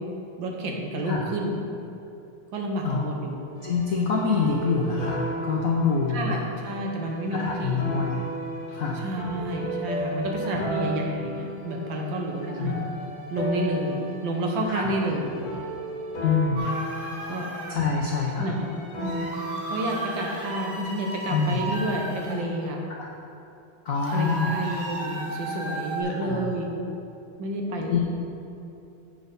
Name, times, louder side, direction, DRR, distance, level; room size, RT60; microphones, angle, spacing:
voice 1, 0.4-1.6 2.5-3.3 4.0-4.1 6.1-6.4 6.6-8.0 8.7-12.8 13.3-15.7 17.3-17.5 18.4-18.7 19.0-19.3 19.7-22.8 24.1-26.7 27.4-28.0, right 1 dB, 65° right, 1 dB, 1.6 m, -30 dB
sound 1, 3.5-20.8, right 1 dB, 45° left, 2.2 m, -35 dB
voice 2, 3.6-6.4 7.3-8.2 8.7-9.0 10.4-10.6 12.4-12.7 14.7-14.9 16.2-16.6 17.7-18.5 21.3-21.6 23.0-23.1 23.8-24.5 26.1-26.4 27.9-28.0, left 5 dB, 70° left, -2 dB, 0.8 m, -26 dB
sound 2, 16.5-17.8 19.0-22.4 23.9-26.0, right 1 dB, 80° right, 2.2 m, -34 dB
7.9 x 6.2 x 5.2 m, 2.8 s
omnidirectional pair, 2.3 m